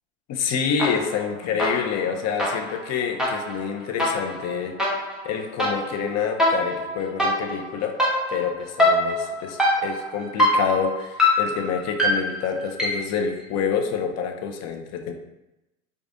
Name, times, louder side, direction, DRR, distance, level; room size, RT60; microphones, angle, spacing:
voice 1, 0.3-4.7 5.2-7.9 8.3-15.1, left 6 dB, 45° left, 4 dB, 0.7 m, -27 dB
sound 1, 0.8-1.3 1.6-13.2, left 1 dB, ahead, 1.1 m, -24 dB
4.7 x 2.4 x 2.6 m, 0.91 s
hypercardioid pair, 95°, 37 cm